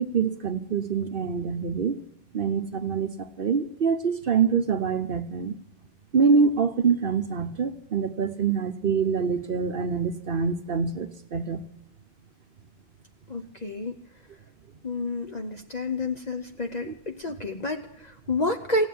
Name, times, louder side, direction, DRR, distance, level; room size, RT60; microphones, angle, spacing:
voice 1, 0.0-2.0 2.3-3.1 3.4-5.5 6.1-11.7 16.9-17.0, right 5 dB, 55° right, 9 dB, 0.9 m, -25 dB
voice 2, 13.3-14.0 14.8-18.9, left 2 dB, 40° left, 4 dB, 0.9 m, -30 dB
16.5 x 9.2 x 9.3 m, 0.83 s
omnidirectional pair, 1.2 m